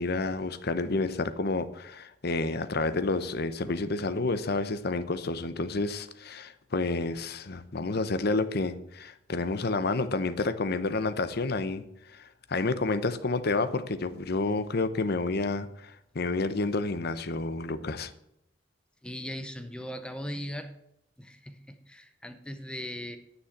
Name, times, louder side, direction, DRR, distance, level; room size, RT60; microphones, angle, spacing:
voice 1, 0.0-18.1, left 3 dB, 55° left, 12 dB, 0.8 m, -30 dB
voice 2, 19.0-20.7 21.2-23.2, equal, 5° left, 8 dB, 0.8 m, -39 dB
9.9 x 6.3 x 7.9 m, 0.79 s
head